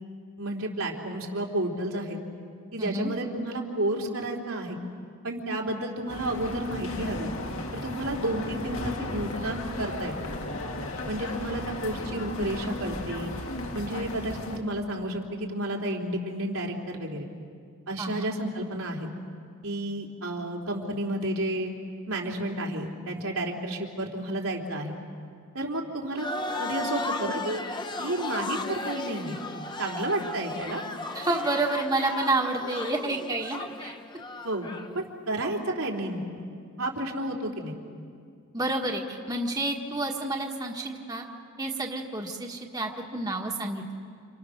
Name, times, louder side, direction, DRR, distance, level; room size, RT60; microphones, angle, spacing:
voice 1, 0.4-2.2 2.7-4.8 5.2-7.3 7.7-10.1 11.1-13.3 13.7-17.3 17.9-19.1 19.6-21.7 22.1-25.0 25.5-26.2 26.6-27.6 28.0-29.4 29.8-30.8 34.4-34.7 35.0-36.4 36.8-37.7, right 1 dB, 80° right, -1 dB, 3.5 m, -31 dB
voice 2, 2.8-3.1 18.0-18.3 31.1-33.9 38.5-41.3 41.6-44.0, right 2 dB, 20° right, 1 dB, 1.4 m, -29 dB
sound 1, 6.1-14.6, left 1 dB, 75° left, 2.3 m, -35 dB
sound 2, 26.1-34.9, left 2 dB, 20° left, 1.0 m, -35 dB
29.0 x 28.5 x 6.5 m, 2.3 s
head